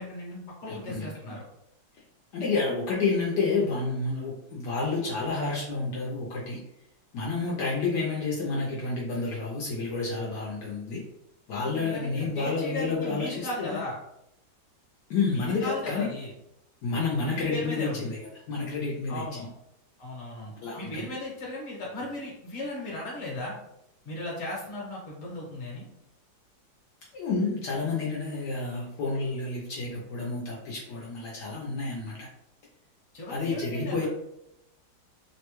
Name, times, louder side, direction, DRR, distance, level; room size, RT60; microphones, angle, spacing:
voice 1, 0.0-1.4 11.6-14.0 15.3-16.3 17.3-18.1 19.1-19.5 20.0-23.5 24.0-25.9 33.1-34.1, left 2 dB, 40° left, -4 dB, 1.2 m, -36 dB
voice 2, 0.7-1.3 2.3-6.6 7.1-11.0 11.5-13.8 15.1-16.1 16.8-18.2 18.5-19.5 20.6-21.1 27.1-32.3 33.3-34.1, left 4 dB, 75° left, -4 dB, 1.2 m, -30 dB
3.2 x 2.1 x 3.0 m, 0.82 s
omnidirectional pair, 2.0 m